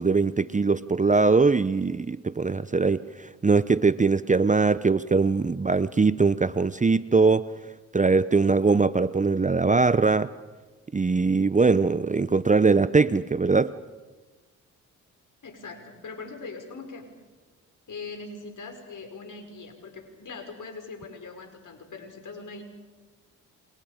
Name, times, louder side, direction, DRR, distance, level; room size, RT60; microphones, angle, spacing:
voice 1, 0.0-7.5 7.9-10.3 10.9-13.7, right 4 dB, 20° right, 15 dB, 0.7 m, -21 dB
voice 2, 15.4-17.1 17.9-22.6, left 4 dB, 55° left, 5 dB, 5.7 m, -41 dB
28.5 x 28.0 x 5.1 m, 1.3 s
supercardioid pair, 50°, 37 cm